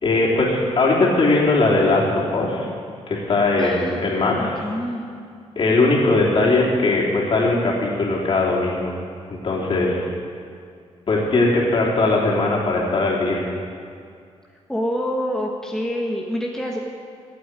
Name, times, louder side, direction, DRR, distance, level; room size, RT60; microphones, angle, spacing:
voice 1, 0.0-2.7 3.1-4.6 5.6-8.9 9.3-10.1 11.1-13.5, left 2 dB, 45° left, -4 dB, 3.5 m, -19 dB
voice 2, 3.6-4.0 4.4-5.1 14.7-16.8, equal, 5° left, -1 dB, 1.2 m, -26 dB
13.5 x 8.7 x 9.7 m, 2.3 s
wide cardioid pair, 125°, 12 cm